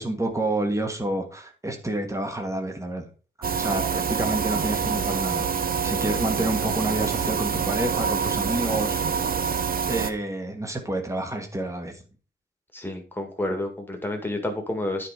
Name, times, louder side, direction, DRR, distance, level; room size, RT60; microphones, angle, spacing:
voice 1, 0.0-3.1 3.5-5.5 5.8-9.2 9.9-12.0, right 1 dB, 15° right, 4 dB, 1.6 m, -29 dB
sound 1, 3.4-10.1, right 6 dB, 50° right, 0.8 m, -26 dB
voice 2, 12.7-15.1, left 1 dB, 10° left, 3 dB, 1.8 m, -30 dB
9.9 x 4.8 x 4.9 m, 0.36 s
wide cardioid pair, 170°, 19 cm